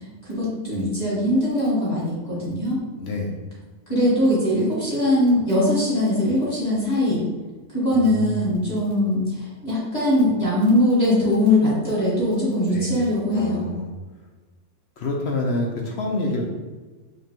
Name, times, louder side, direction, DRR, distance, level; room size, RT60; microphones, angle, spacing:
voice 1, 0.2-2.8 3.9-7.2 7.7-13.6, left 1 dB, 30° left, -9 dB, 1.4 m, -21 dB
voice 2, 3.0-3.3 7.9-8.5 12.7-12.9 13.3-13.9 15.0-16.5, left 2 dB, 70° left, 0 dB, 0.6 m, -27 dB
5.1 x 2.3 x 2.9 m, 1.3 s
omnidirectional pair, 1.6 m